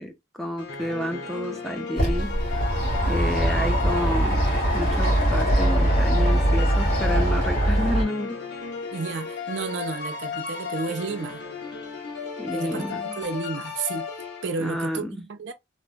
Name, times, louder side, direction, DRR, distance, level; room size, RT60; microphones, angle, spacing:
voice 1, 0.0-2.4 3.1-4.4 4.7-8.4 12.4-13.2 14.6-15.2, left 1 dB, ahead, 0.4 m, -30 dB
sound 1, 0.6-14.9, left 5 dB, 70° left, 0.9 m, -35 dB
sound 2, 2.0-8.0, right 1 dB, 40° left, 1.7 m, -22 dB
voice 2, 8.9-11.4 12.5-14.1 14.4-15.5, right 4 dB, 70° right, 0.5 m, -31 dB
3.2 x 2.0 x 2.5 m
head